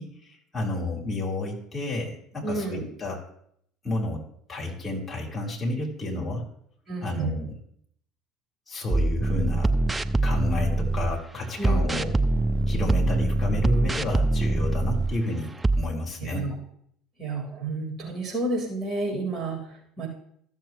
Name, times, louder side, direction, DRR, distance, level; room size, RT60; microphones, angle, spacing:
voice 1, 0.0-3.2 3.8-4.2 4.5-6.5 7.0-7.5 8.7-9.7 10.2-12.1 12.7-16.4, left 2 dB, 25° left, -2 dB, 3.6 m, -31 dB
voice 2, 2.4-2.9 6.9-7.3 11.6-12.1 16.2-16.6 17.2-19.6 20.0-20.1, right 2 dB, 30° right, -3 dB, 4.0 m, -30 dB
sound 1, 8.9-11.2 11.6-15.2 15.6-15.8, right 2 dB, 15° right, 0.6 m, -24 dB
14.5 x 7.1 x 3.0 m, 0.68 s
figure-of-eight pair, 60°, 0 cm